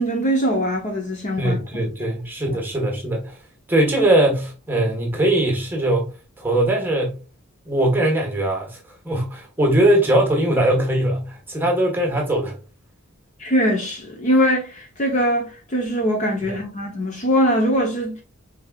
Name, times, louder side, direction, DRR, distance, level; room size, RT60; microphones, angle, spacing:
voice 1, 0.0-1.6 13.4-18.2, equal, 35° left, 0.8 m, -21 dB
voice 2, 1.4-3.4 3.7-7.2 7.6-8.8 9.0-12.6 16.4-16.6, right 1 dB, 10° right, 1.3 m, -20 dB
5.4 x 3.4 x 2.3 m
head